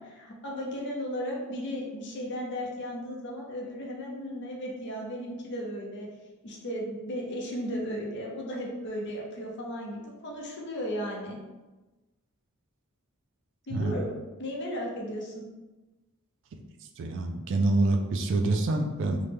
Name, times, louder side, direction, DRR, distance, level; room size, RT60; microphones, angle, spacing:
voice 1, 0.0-6.1 6.4-11.4 13.7-14.1 14.4-15.4, equal, 55° left, -1 dB, 0.6 m, -35 dB
voice 2, 17.0-19.2, right 2 dB, 60° right, 5 dB, 0.3 m, -26 dB
3.0 x 2.1 x 3.3 m, 1.2 s
head